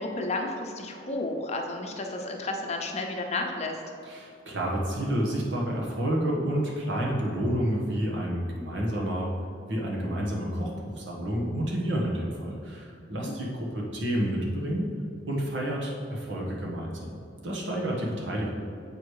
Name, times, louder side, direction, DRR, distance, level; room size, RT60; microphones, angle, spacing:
voice 1, 0.0-3.8 13.2-13.3, left 2 dB, 35° left, 2 dB, 0.8 m, -32 dB
voice 2, 4.0-9.3 9.7-14.9 15.3-17.1 17.4-18.5, equal, 85° right, -3 dB, 1.5 m, -29 dB
7.4 x 4.9 x 4.8 m, 2.5 s
head